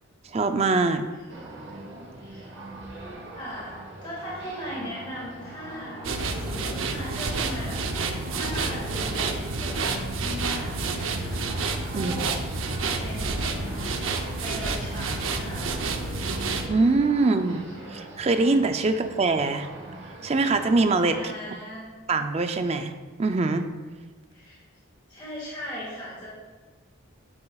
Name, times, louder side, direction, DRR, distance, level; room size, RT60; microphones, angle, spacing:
voice 1, 0.2-1.0 11.9-12.1 16.7-17.6 17.9-19.7 20.2-21.3 22.1-22.9 23.2-23.7, right 3 dB, 30° right, 7 dB, 0.4 m, -23 dB
sound 1, 1.3-21.2, right 2 dB, 55° right, 1.3 m, -42 dB
voice 2, 2.2-2.6 3.3-6.0 6.3-7.8 8.3-11.4 11.9-12.4 12.8-13.7 14.2-15.8 21.1-21.9 24.3-24.6 25.1-26.3, equal, 25° left, -6 dB, 1.9 m, -38 dB
sound 2, 5.2-19.3, left 2 dB, 65° left, 0.6 m, -46 dB
sound 3, 6.0-16.7, right 3 dB, 75° right, 0.7 m, -29 dB
8.6 x 8.1 x 2.4 m, 1.3 s
head